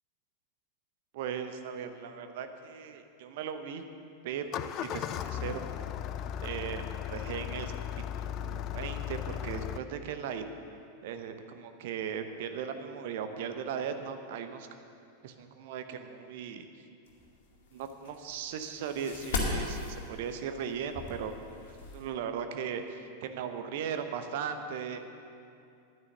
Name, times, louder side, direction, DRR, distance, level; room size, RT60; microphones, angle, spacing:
voice 1, 1.1-3.8 4.2-5.7 6.4-7.7 8.1-10.4 11.0-14.7 15.2-16.7 17.7-21.6 21.9-25.0, right 7 dB, 50° right, 8 dB, 0.9 m, -38 dB
Engine starting, 4.4-9.8, left 10 dB, 35° left, 0.4 m, -36 dB
sound 1, 17.1-22.1, left 3 dB, 55° left, 2.2 m, -38 dB
10.5 x 9.7 x 7.1 m, 2.6 s
figure-of-eight pair, 90°, 0 cm